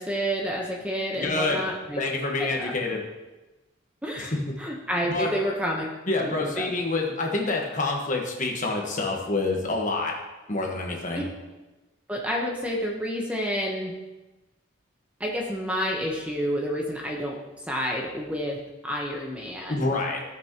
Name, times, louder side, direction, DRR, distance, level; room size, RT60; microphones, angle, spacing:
voice 1, 0.0-2.0 2.4-2.7 4.0-5.9 6.2-6.7 11.2-11.3 12.1-13.9 15.2-17.4 17.7-18.6 18.8-19.9, equal, 5° right, -2 dB, 1.0 m, -29 dB
voice 2, 1.1-1.6 2.0-3.0 4.2-4.3 5.1-5.3 6.1-10.1 10.5-11.3 19.7-20.2, left 2 dB, 40° left, 0 dB, 1.4 m, -27 dB
16.5 x 6.0 x 3.0 m, 1.1 s
head